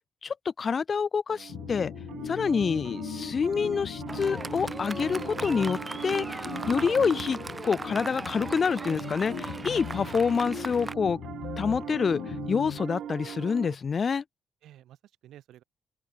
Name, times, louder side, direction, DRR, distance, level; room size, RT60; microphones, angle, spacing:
voice 1, 0.2-1.9 2.3-11.2 11.6-12.2 12.5-14.2, left 6 dB, 30° left, 0.4 m, -27 dB
Piano, 1.3-13.7, right 10 dB, 65° right, 0.5 m, -41 dB
sound 1, 1.5-13.4, left 11 dB, 70° left, 1.0 m, -40 dB
Fireworks, 4.1-10.9, right 3 dB, 15° right, 1.2 m, -38 dB
voice 2, 6.8-7.1 10.0-10.6 14.6-15.6, right 12 dB, 90° right, 3.5 m, -52 dB
open air
cardioid pair, 175°, 0 cm